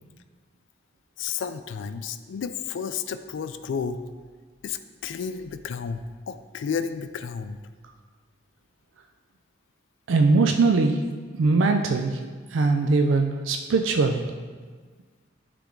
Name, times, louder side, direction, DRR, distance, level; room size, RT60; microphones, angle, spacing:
voice 1, 1.2-4.0 4.6-7.6, left 6 dB, 80° left, 10 dB, 0.3 m, -32 dB
voice 2, 10.1-11.0 11.4-12.2 12.5-14.2, right 3 dB, 85° right, 4 dB, 0.4 m, -21 dB
9.9 x 3.4 x 3.8 m, 1.5 s
head